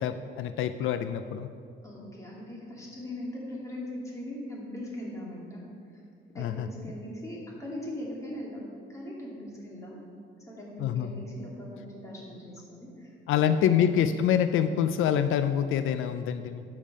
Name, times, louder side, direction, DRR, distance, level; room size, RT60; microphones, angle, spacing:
voice 1, 0.0-1.5 6.4-6.7 10.8-11.2 13.3-16.6, left 9 dB, 85° left, 10 dB, 0.4 m, -26 dB
voice 2, 1.8-5.6 6.3-10.0 10.5-13.9, left 1 dB, 15° left, -4 dB, 2.5 m, -40 dB
12.5 x 5.3 x 5.4 m, 2.4 s
cardioid pair, 140°, 20 cm